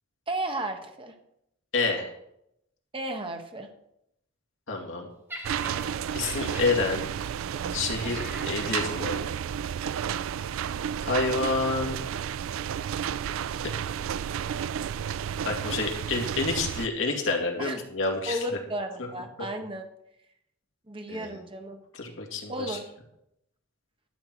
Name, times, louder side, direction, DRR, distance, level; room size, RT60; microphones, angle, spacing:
voice 1, 0.3-1.1 2.9-3.7 8.0-8.3 17.6-17.8 18.3-19.9 20.9-21.8 22.5-22.8, right 1 dB, 25° right, 4 dB, 1.4 m, -34 dB
voice 2, 1.7-2.1 4.7-5.1 6.1-7.0 7.7-9.2 11.0-12.0 15.4-18.4 19.0-19.1 21.1-21.4 21.9-22.8, left 3 dB, 70° left, 0 dB, 2.4 m, -28 dB
Laughter, 5.3-9.5 10.3-10.5, equal, 10° right, 1.6 m, -44 dB
sound 1, 5.4-16.9, right 8 dB, 80° right, 0.3 m, -32 dB
12.5 x 7.7 x 4.6 m, 0.78 s
head